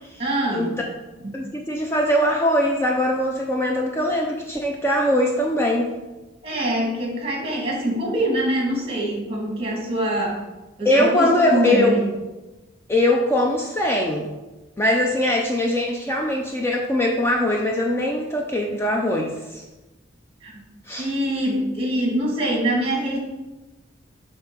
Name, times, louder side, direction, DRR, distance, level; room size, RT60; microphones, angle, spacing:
voice 1, 0.2-0.8 1.2-1.4 6.4-10.4 10.8-12.1 20.4-20.6 21.0-23.2, right 1 dB, 30° right, -1 dB, 1.8 m, -24 dB
voice 2, 1.3-5.9 10.8-12.1 12.9-14.3 14.8-19.6 20.9-21.1, left 1 dB, 15° left, 0 dB, 0.6 m, -21 dB
8.0 x 2.9 x 5.9 m, 1.1 s
head